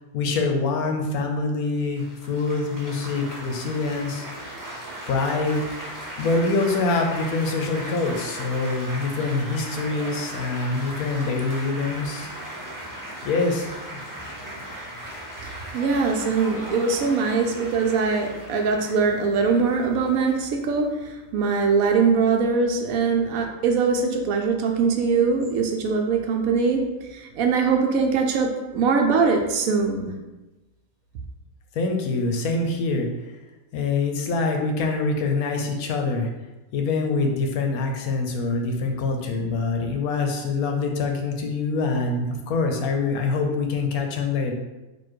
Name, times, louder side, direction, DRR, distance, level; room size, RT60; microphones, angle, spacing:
voice 1, 0.1-4.3 5.1-12.3 13.2-14.0 31.7-33.1 33.7-36.3 36.7-44.5, left 3 dB, 80° left, 3 dB, 1.2 m, -25 dB
Laughter / Applause / Chatter, 2.0-21.1, right 1 dB, 20° right, 0.7 m, -37 dB
voice 2, 15.4-26.8 27.1-30.1, right 5 dB, 75° right, 4 dB, 1.0 m, -22 dB
4.3 x 2.6 x 4.4 m, 1.1 s
omnidirectional pair, 1.5 m